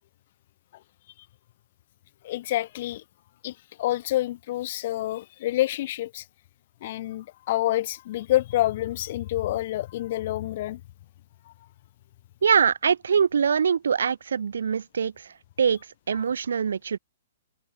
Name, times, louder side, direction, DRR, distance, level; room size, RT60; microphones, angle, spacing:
voice 1, 2.2-3.0 3.4-3.5 3.8-6.2 6.8-10.8, left 15 dB, 40° left, 0.4 m, -27 dB
voice 2, 12.4-15.1 15.6-15.8 16.1-17.0, right 7 dB, 90° right, 0.5 m, -23 dB
hypercardioid pair, 170°, 0 cm